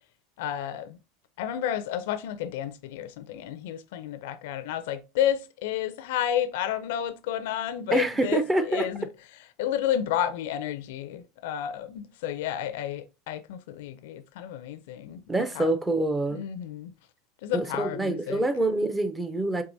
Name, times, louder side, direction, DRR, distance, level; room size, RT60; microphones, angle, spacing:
voice 1, 0.4-1.0 1.4-9.1 9.6-15.2 15.5-15.7 16.3-16.9 17.4-18.4, left 10 dB, 80° left, 0.4 m, -31 dB
voice 2, 7.9-8.9 15.3-16.4 17.5-19.6, right 2 dB, 15° right, 0.5 m, -26 dB
4.6 x 3.2 x 2.6 m
supercardioid pair, 125°, 0 cm